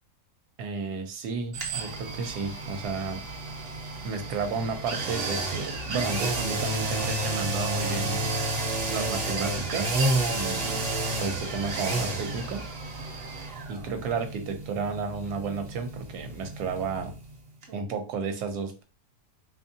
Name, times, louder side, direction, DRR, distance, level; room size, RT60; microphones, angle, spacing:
voice 1, 0.6-3.2 4.0-8.3 8.9-10.0 10.3-10.8 11.2-12.6 13.7-17.1 17.7-18.8, right 4 dB, 80° right, 7 dB, 1.2 m, -32 dB
sound 1, 1.5-17.3 17.6-17.7, right 2 dB, 50° right, 0.7 m, -31 dB
3.5 x 2.8 x 2.6 m, 0.32 s
omnidirectional pair, 1.7 m